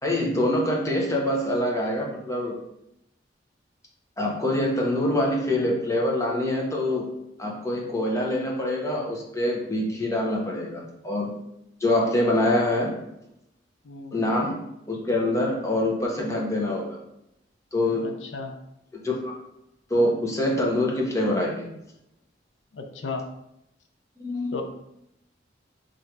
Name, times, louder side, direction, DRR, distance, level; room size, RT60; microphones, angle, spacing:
voice 1, 0.0-2.5 4.2-7.1 7.4-11.3 11.8-12.9 14.1-14.6 14.9-17.0 17.7-18.1 18.9-19.4 19.9-21.7 24.2-24.6, left 1 dB, 15° left, -2 dB, 0.8 m, -25 dB
voice 2, 13.8-14.2 18.0-18.5 22.7-23.2 24.5-24.6, left 4 dB, 75° left, 3 dB, 0.5 m, -34 dB
3.2 x 2.6 x 4.5 m, 0.81 s
head